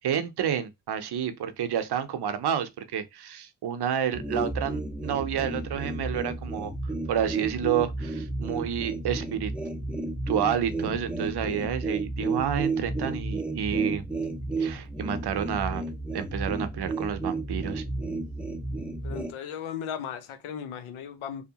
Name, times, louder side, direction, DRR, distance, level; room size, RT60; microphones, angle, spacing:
voice 1, 0.0-6.7 7.1-9.5 10.3-14.1 14.6-15.8 16.1-17.8, right 9 dB, 55° right, 0.6 m, -29 dB
sound 1, 4.1-19.3, right 2 dB, 5° right, 0.5 m, -32 dB
voice 2, 19.0-21.5, left 8 dB, 80° left, 0.7 m, -36 dB
2.7 x 2.1 x 2.8 m
supercardioid pair, 50°, 48 cm